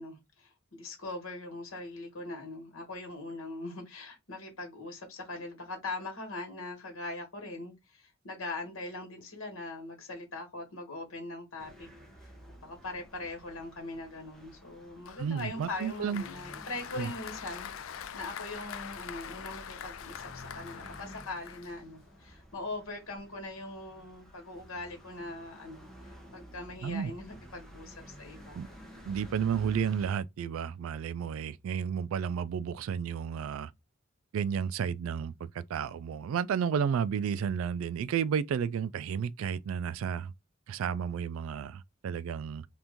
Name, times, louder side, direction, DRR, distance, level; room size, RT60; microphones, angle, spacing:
voice 1, 0.0-11.9 12.5-25.9 26.3-28.6, left 2 dB, 85° left, 1.4 m, -41 dB
sound 1, 11.6-30.1, equal, ahead, 0.8 m, -52 dB
Applause, 15.1-22.2, left 9 dB, 70° left, 0.4 m, -44 dB
voice 2, 15.2-16.2 17.0-17.1 26.8-27.1 28.5-28.7 29.0-33.7 34.3-40.3 40.7-42.7, right 7 dB, 75° right, 0.3 m, -32 dB
2.9 x 2.5 x 3.5 m
head